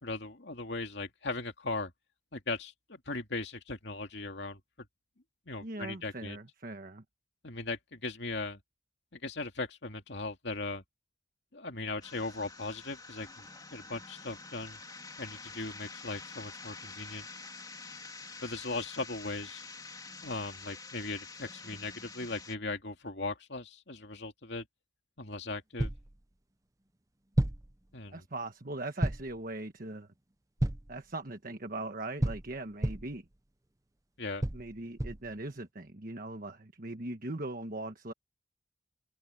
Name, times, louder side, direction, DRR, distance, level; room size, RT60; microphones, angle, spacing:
voice 1, 0.0-1.9 2.3-4.6 5.5-6.4 7.4-8.6 9.1-10.8 11.5-13.4 13.7-14.8 15.2-17.3 18.4-19.6 20.2-24.6 25.2-25.9 27.9-28.2 34.2-34.4, left 3 dB, 60° left, 2.7 m, -38 dB
voice 2, 5.6-7.0 28.1-30.1 30.9-33.3 34.5-38.1, right 2 dB, 45° right, 1.3 m, -40 dB
sound 1, 12.0-22.6, left 4 dB, 20° left, 3.3 m, -47 dB
sound 2, 25.8-26.1 27.4-27.7 29.0-29.4 30.6-31.0 32.2-33.2 34.4-35.3, right 1 dB, 15° right, 0.7 m, -31 dB
head